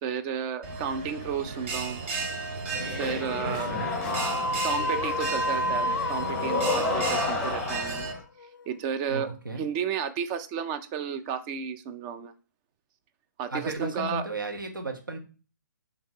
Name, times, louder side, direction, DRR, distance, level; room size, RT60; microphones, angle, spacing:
voice 1, 0.0-2.2 2.9-3.8 4.6-8.1 8.7-9.3 9.6-12.3 13.4-14.3, right 8 dB, 20° right, 11 dB, 0.4 m, -32 dB
Bell, 0.6-8.1, right 3 dB, 40° right, 1.0 m, -35 dB
sound 1, 2.7-8.2, left 2 dB, 10° left, 1.0 m, -32 dB
sound 2, 3.2-8.6, left 2 dB, 85° left, 0.4 m, -32 dB
voice 2, 3.4-3.9 9.1-9.6 13.5-15.2, right 2 dB, 85° right, 3 dB, 1.2 m, -34 dB
3.7 x 2.9 x 4.4 m, 0.35 s
figure-of-eight pair, 140°, 11 cm